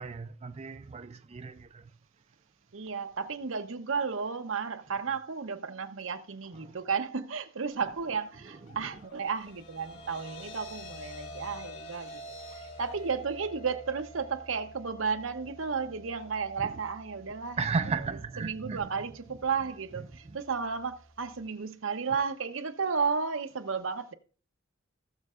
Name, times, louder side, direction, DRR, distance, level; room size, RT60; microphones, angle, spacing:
voice 1, 0.0-1.9 6.5-6.8 8.7-8.8 17.6-18.8, right 4 dB, 35° right, 0.4 m, -34 dB
voice 2, 2.7-12.2 12.5-17.6 18.4-24.1, right 5 dB, 80° right, 0.8 m, -33 dB
sound 1, 6.2-7.4 7.7-13.8, left 3 dB, 70° left, 3.7 m, -62 dB
sound 2, 9.1-21.5, equal, 55° left, 2.4 m, -48 dB
18.5 x 6.5 x 2.4 m
head